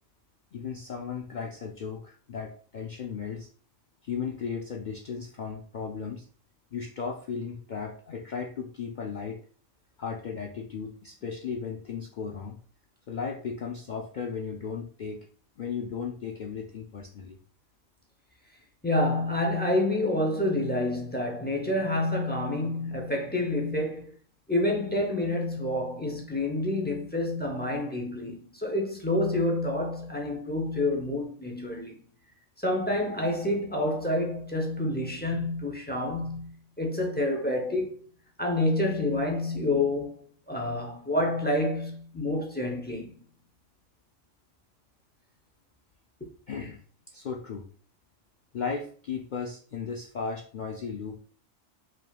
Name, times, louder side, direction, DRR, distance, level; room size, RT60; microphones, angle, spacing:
voice 1, 0.5-3.5 4.0-6.3 6.7-9.4 10.0-12.6 13.1-15.3 15.6-17.4 46.5-46.8 47.1-47.7 48.5-51.2, left 6 dB, 80° left, 0.4 m, -35 dB
voice 2, 18.8-24.1 24.5-32.0 32.6-38.1 38.4-43.1, left 1 dB, 15° left, 0.4 m, -28 dB
4.9 x 3.6 x 2.3 m
omnidirectional pair, 1.4 m